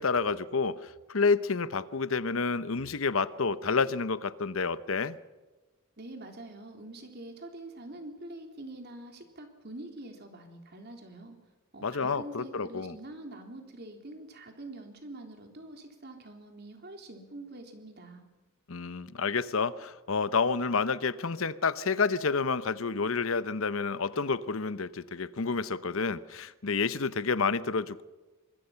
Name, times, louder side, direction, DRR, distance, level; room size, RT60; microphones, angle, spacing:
voice 1, 0.0-5.2 11.8-12.9 18.7-28.0, left 4 dB, 70° left, 15 dB, 0.9 m, -29 dB
voice 2, 6.0-11.4 11.7-18.2, right 1 dB, 50° right, 4 dB, 3.6 m, -45 dB
25.5 x 21.5 x 5.8 m, 1.2 s
head